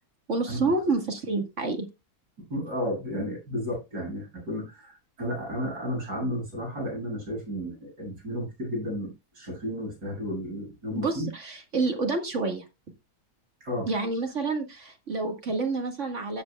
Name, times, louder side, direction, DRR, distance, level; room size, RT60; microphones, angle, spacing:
voice 1, 0.3-1.9 11.0-12.7 13.9-16.4, right 3 dB, 50° right, 5 dB, 2.0 m, -28 dB
voice 2, 2.5-11.3 13.6-13.9, equal, 80° right, -2 dB, 8.6 m, -33 dB
16.0 x 7.9 x 2.3 m, 0.23 s
omnidirectional pair, 1.7 m